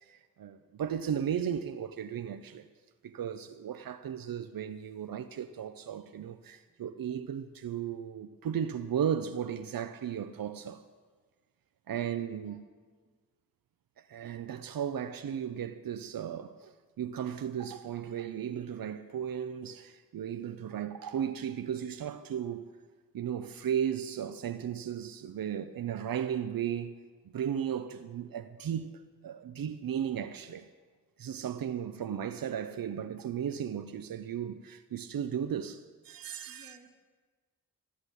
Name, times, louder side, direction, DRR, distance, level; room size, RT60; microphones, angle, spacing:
voice 1, 0.0-2.7 3.0-10.8 11.9-12.6 14.0-22.7 23.1-26.9 27.3-30.7 31.2-36.8, right 9 dB, 85° right, 0.7 m, -35 dB
voice 2, 11.9-12.6 12.9-13.1 36.4-36.9, right 2 dB, 20° right, 2.9 m, -58 dB
13.0 x 11.5 x 8.2 m
wide cardioid pair, 135°, 34 cm